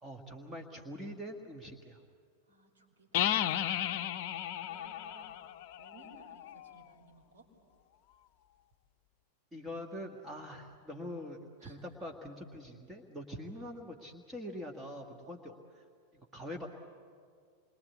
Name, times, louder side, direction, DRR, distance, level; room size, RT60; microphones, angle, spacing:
voice 1, 0.0-2.0 9.5-15.8 16.1-16.7, equal, 10° right, 1 dB, 1.8 m, -44 dB
voice 2, 2.5-4.0 4.7-5.4 5.8-7.5 11.6-11.8 15.2-15.3, right 3 dB, 70° right, 0 dB, 5.1 m, -59 dB
sound 1, 3.1-6.8, left 11 dB, 45° left, 0.7 m, -34 dB
27.5 x 23.0 x 8.5 m, 2.2 s
figure-of-eight pair, 90°, 0 cm